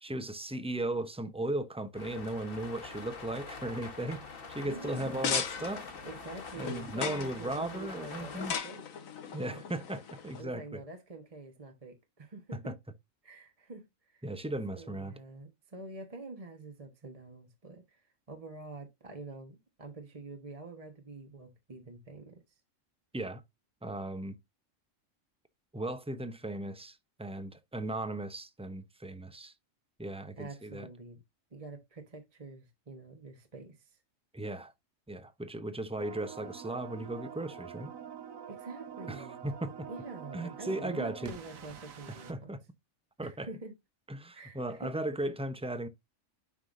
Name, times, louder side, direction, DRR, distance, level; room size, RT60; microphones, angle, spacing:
voice 1, 0.0-5.9 6.6-8.5 9.3-10.8 12.5-12.7 14.2-15.1 23.1-23.4 23.8-24.4 25.7-29.5 30.0-30.9 34.3-34.7 35.1-37.9 39.1-39.9 40.3-41.3 42.3-42.6 43.2-43.5 44.1-45.9, right 1 dB, 10° right, 0.4 m, -37 dB
sound 1, 1.9-8.5, left 4 dB, 45° left, 1.3 m, -45 dB
voice 2, 4.6-5.4 6.0-8.8 9.2-9.6 10.4-12.7 13.2-14.3 14.8-22.4 30.4-31.2 31.5-34.0 38.5-39.4 39.9-42.5 43.2-43.7 44.3-44.9, right 3 dB, 30° right, 1.2 m, -46 dB
sound 2, 4.9-10.4, left 7 dB, 85° left, 1.4 m, -38 dB
sound 3, 36.0-42.3, right 8 dB, 80° right, 1.4 m, -46 dB
11.0 x 5.7 x 2.6 m
omnidirectional pair, 1.4 m